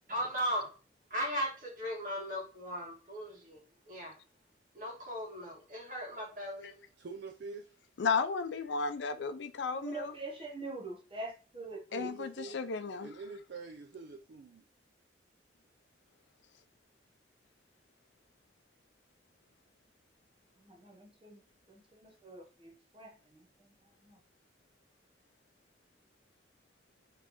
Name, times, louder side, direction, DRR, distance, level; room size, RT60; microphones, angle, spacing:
voice 1, 0.1-0.6 1.1-3.6 3.9-4.1 4.7-6.8, equal, 45° right, 1.6 m, -37 dB
voice 2, 7.0-7.7 12.0-12.6 13.0-14.6, right 4 dB, 75° right, 0.4 m, -45 dB
voice 3, 8.0-10.1 11.9-13.1, left 5 dB, 85° left, 0.4 m, -34 dB
voice 4, 9.7-12.1 20.6-21.4 21.7-23.7 24.0-24.2, right 3 dB, 30° right, 0.8 m, -45 dB
4.1 x 3.2 x 2.9 m
head